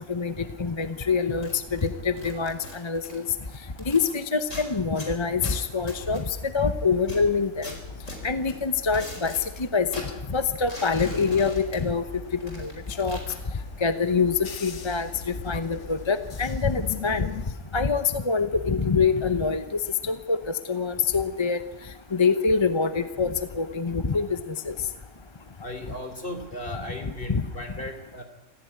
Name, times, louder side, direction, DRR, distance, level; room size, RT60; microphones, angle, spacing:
voice 1, 0.6-3.2 3.9-7.7 8.2-9.3 9.6-9.9 10.3-12.0 12.4-13.2 13.8-17.3 17.7-19.6 20.0-20.4 20.7-21.6 22.1-24.3 24.7-24.8 27.3-27.4, left 5 dB, 25° left, 10 dB, 0.8 m, -25 dB
sound 1, 1.3-4.1 4.4-6.7 7.0-9.6 9.9-12.1 12.4-13.4, left 1 dB, 90° left, 4.9 m, -41 dB
sound 2, 5.9-17.5, left 4 dB, 70° left, 1.6 m, -41 dB
voice 2, 25.6-28.2, left 1 dB, 45° left, 7 dB, 3.4 m, -36 dB
25.0 x 15.5 x 9.6 m, 0.99 s
omnidirectional pair, 1.3 m